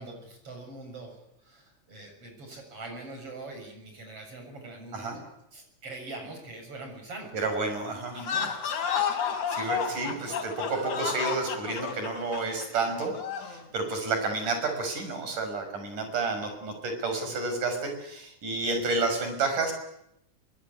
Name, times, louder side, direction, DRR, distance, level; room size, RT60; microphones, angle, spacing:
voice 1, 0.0-5.2 5.5-7.3 7.8-8.6 9.5-10.2, right 2 dB, 45° right, 4 dB, 8.1 m, -43 dB
voice 2, 7.3-8.2 9.5-13.1 13.4-19.7, right 3 dB, 90° right, 6 dB, 7.6 m, -30 dB
sound 1, 8.1-13.6, left 7 dB, 70° left, 4.5 m, -31 dB
23.5 x 23.0 x 9.8 m, 0.79 s
omnidirectional pair, 3.5 m